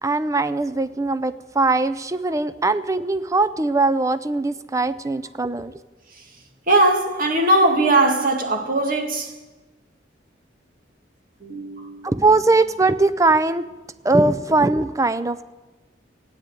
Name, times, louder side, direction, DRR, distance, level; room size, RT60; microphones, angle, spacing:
voice 1, 0.0-5.7 12.0-13.7 14.0-15.4, right 3 dB, 15° right, 0.5 m, -20 dB
voice 2, 6.7-9.3 11.4-12.1, right 2 dB, 45° right, 2.0 m, -19 dB
14.5 x 9.0 x 9.2 m
head